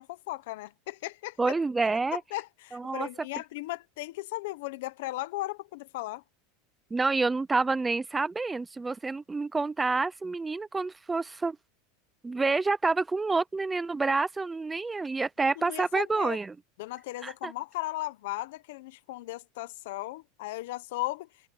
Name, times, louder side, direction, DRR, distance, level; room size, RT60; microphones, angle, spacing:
voice 1, 0.0-1.5 2.1-6.2 15.6-16.4 16.8-21.3, left 18 dB, 65° left, 0.9 m, -36 dB
voice 2, 1.4-2.2 2.7-3.1 6.9-11.6 12.2-16.6 17.2-17.5, right 3 dB, 10° right, 0.4 m, -28 dB
supercardioid pair, 175°, 0 cm